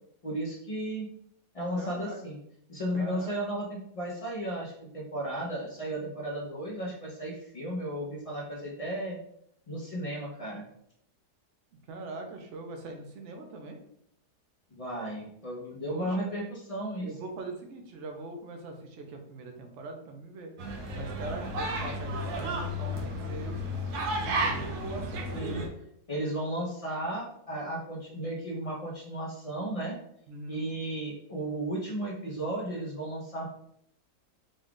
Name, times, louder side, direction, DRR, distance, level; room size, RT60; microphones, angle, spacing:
voice 1, 0.2-1.1 1.5-2.4 2.7-9.2 9.7-10.6 14.7-17.1 25.3-25.6 26.1-30.0 30.5-33.5, right 1 dB, 50° left, -4 dB, 0.4 m, -34 dB
voice 2, 1.8-2.2 2.9-3.3 11.9-13.8 15.9-16.3 17.0-20.5 20.9-23.5 24.2-25.7 30.3-30.6, right 3 dB, 60° right, 3 dB, 0.9 m, -42 dB
sound 1, 20.6-25.7, equal, 75° right, 1.2 m, -32 dB
3.9 x 2.3 x 3.7 m, 0.71 s
omnidirectional pair, 1.7 m